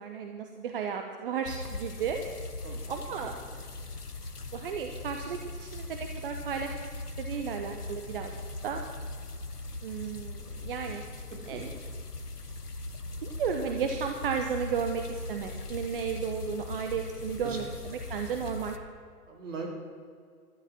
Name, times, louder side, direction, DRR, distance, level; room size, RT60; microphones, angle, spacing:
voice 1, 0.0-2.2 2.9-3.3 4.5-6.9 7.2-8.4 8.6-8.8 9.8-11.0 11.5-11.7 13.2-18.8, right 7 dB, 35° right, 5 dB, 1.0 m, -34 dB
sound 1, 1.5-18.8, left 2 dB, 85° left, 1.2 m, -40 dB
voice 2, 2.6-3.3 10.8-11.0 11.5-11.7 17.4-17.6 19.3-19.7, right 4 dB, 55° right, 1 dB, 3.5 m, -41 dB
13.0 x 11.0 x 7.4 m, 2.1 s
figure-of-eight pair, 120°, 45 cm